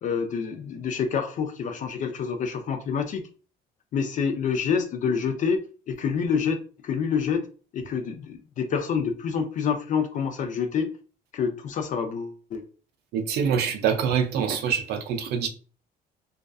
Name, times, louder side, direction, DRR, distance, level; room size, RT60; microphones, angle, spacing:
voice 1, 0.0-3.3 3.9-7.5 7.7-10.9 11.3-12.6, left 6 dB, 50° left, 0.4 m, -27 dB
voice 2, 13.1-15.5, right 7 dB, 70° right, 0.4 m, -25 dB
2.4 x 2.3 x 2.3 m
cardioid pair, 110°, 17 cm